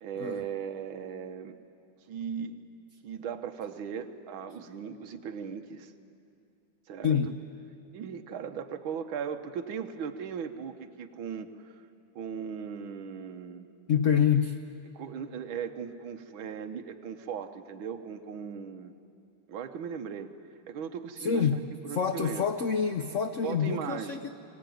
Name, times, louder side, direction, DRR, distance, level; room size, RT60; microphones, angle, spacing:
voice 1, 0.0-1.6 2.1-2.6 3.0-5.9 6.9-7.2 7.9-11.8 12.2-13.7 15.0-18.9 19.5-20.3 20.7-22.5 23.4-24.3, right 7 dB, 75° right, 7 dB, 1.8 m, -38 dB
voice 2, 13.9-14.6 21.2-21.6 21.9-24.3, left 7 dB, 80° left, 7 dB, 0.6 m, -27 dB
23.0 x 18.0 x 9.2 m, 2.5 s
omnidirectional pair, 2.3 m